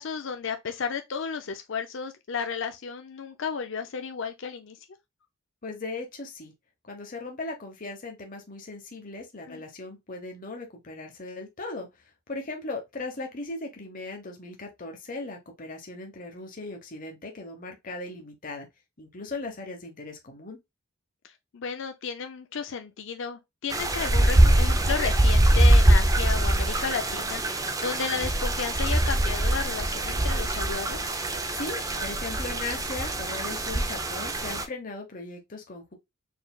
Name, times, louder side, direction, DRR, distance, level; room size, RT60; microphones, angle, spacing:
voice 1, 0.0-4.8 9.5-9.6 21.5-31.1, left 6 dB, 60° left, 0.5 m, -33 dB
voice 2, 5.6-6.5 6.8-18.7 19.0-20.6 31.5-35.9, left 3 dB, 40° left, 0.9 m, -38 dB
sound 1, 23.7-34.6, right 1 dB, 15° right, 0.5 m, -23 dB
4.5 x 3.3 x 2.3 m
head